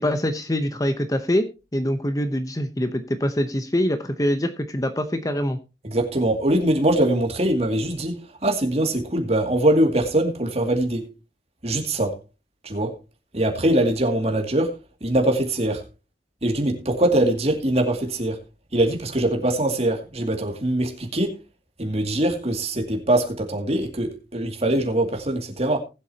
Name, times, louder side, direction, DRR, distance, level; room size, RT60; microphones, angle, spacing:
voice 1, 0.0-5.6, equal, 20° left, 0.8 m, -24 dB
voice 2, 5.8-11.0 11.6-12.2 12.6-12.9 13.3-15.8 16.4-18.4 18.7-21.4 21.8-25.8, right 1 dB, 35° right, 2.3 m, -22 dB
19.5 x 8.0 x 2.8 m
head